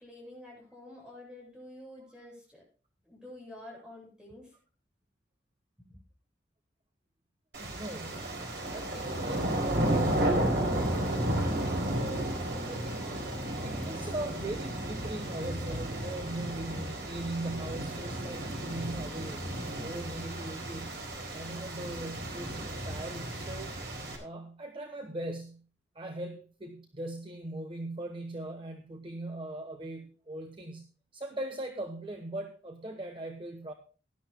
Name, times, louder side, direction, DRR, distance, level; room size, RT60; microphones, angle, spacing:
voice 1, 0.0-2.6 3.0-4.6 5.8-6.0, left 1 dB, 5° right, -3 dB, 7.7 m, -49 dB
sound 1, 7.5-24.2, right 1 dB, 65° right, 3.9 m, -33 dB
voice 2, 7.6-8.3 8.7-10.5 12.6-13.1 13.6-19.5 19.8-21.1 21.3-23.8 24.2-25.6 25.9-33.7, right 1 dB, 30° right, 5 dB, 1.0 m, -40 dB
19.0 x 12.0 x 2.2 m, 0.37 s
head